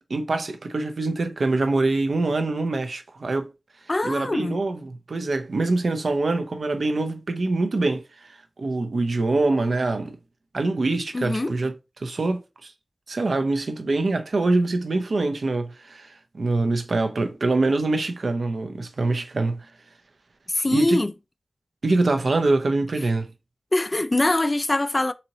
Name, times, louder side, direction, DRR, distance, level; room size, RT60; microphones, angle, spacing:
voice 1, 0.1-3.5 4.0-10.2 10.5-12.7 13.1-19.7 20.7-21.0 21.8-23.3, right 2 dB, 85° right, 0.6 m, -24 dB
voice 2, 3.9-4.6 11.1-11.5 20.5-21.1 23.7-25.1, left 2 dB, 35° left, 0.3 m, -23 dB
4.1 x 2.8 x 2.8 m
wide cardioid pair, 60°, 0 cm